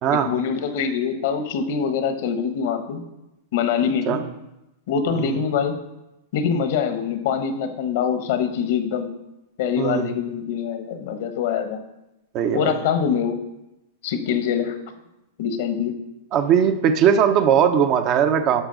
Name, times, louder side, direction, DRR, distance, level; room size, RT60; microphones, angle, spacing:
voice 1, 0.1-3.0 3.5-4.2 4.9-5.8 6.3-9.1 9.6-11.8 12.5-13.4 14.0-14.7 15.4-16.0, left 7 dB, 60° left, 8 dB, 1.1 m, -24 dB
voice 2, 9.8-10.1 12.3-12.8 16.3-18.6, right 8 dB, 40° right, 7 dB, 0.8 m, -19 dB
11.0 x 6.1 x 4.0 m, 0.92 s
hypercardioid pair, 115°, 0 cm